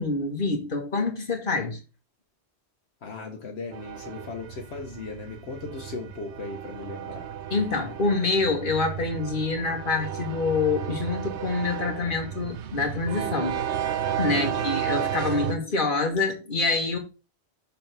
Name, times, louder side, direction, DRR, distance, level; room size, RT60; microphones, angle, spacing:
voice 1, 0.0-1.8 7.5-13.6 14.2-17.0, left 3 dB, 50° left, 1.7 m, -26 dB
voice 2, 3.0-7.3 14.3-14.8, left 3 dB, 70° left, 1.3 m, -37 dB
sound 1, 3.7-15.5, right 9 dB, 80° right, 1.1 m, -33 dB
6.8 x 5.8 x 3.4 m
omnidirectional pair, 1.2 m